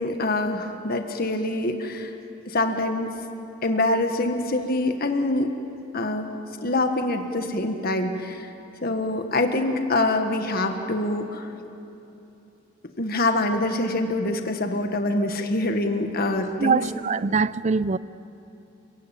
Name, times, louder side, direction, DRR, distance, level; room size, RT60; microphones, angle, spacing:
voice 1, 0.0-2.1 2.5-3.2 3.6-5.5 5.9-6.3 6.6-8.5 8.8-11.5 13.0-16.8, left 2 dB, 50° left, 1.5 m, -25 dB
voice 2, 16.6-18.0, right 4 dB, 35° right, 0.5 m, -23 dB
28.5 x 16.5 x 8.9 m
head